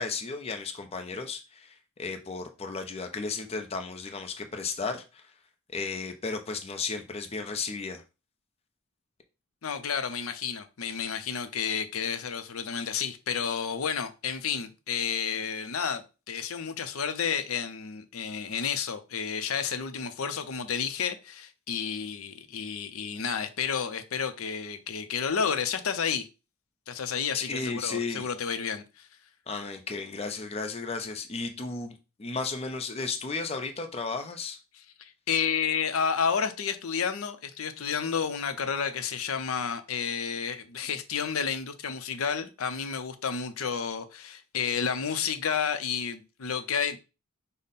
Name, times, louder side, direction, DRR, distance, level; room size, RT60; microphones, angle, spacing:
voice 1, 0.0-5.3 5.7-8.0 12.8-12.9 27.3-28.3 29.5-34.6, left 4 dB, 30° left, 0.5 m, -34 dB
voice 2, 9.6-26.3 26.9-29.1 35.3-47.0, left 6 dB, 80° left, 0.6 m, -31 dB
5.2 x 2.1 x 4.1 m
head